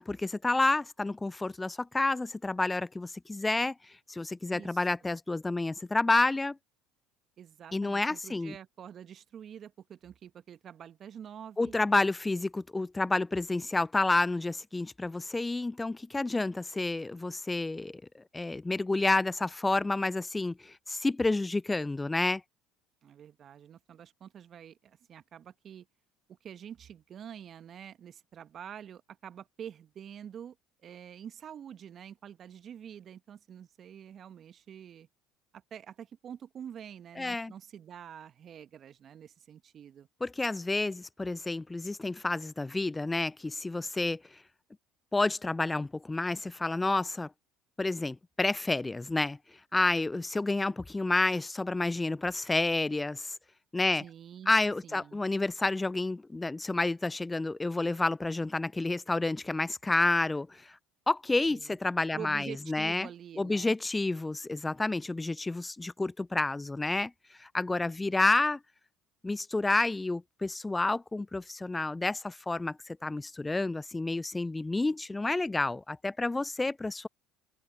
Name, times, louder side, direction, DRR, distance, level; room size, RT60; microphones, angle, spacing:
voice 1, 0.0-3.7 4.1-6.6 7.7-8.6 11.6-22.4 37.2-37.5 40.2-44.2 45.1-47.3 47.8-49.4 49.7-53.3 53.7-54.0 54.5-60.6 61.1-63.1 63.4-67.1 67.4-68.6 69.2-77.1, left 2 dB, 15° left, 0.4 m, -29 dB
voice 2, 4.5-5.1 7.4-11.7 23.0-25.9 26.3-30.6 30.8-35.1 35.5-40.1 53.9-54.5 54.8-55.2 61.5-61.8 62.1-63.7, right 9 dB, 45° right, 1.2 m, -47 dB
hypercardioid pair, 65°, 0 cm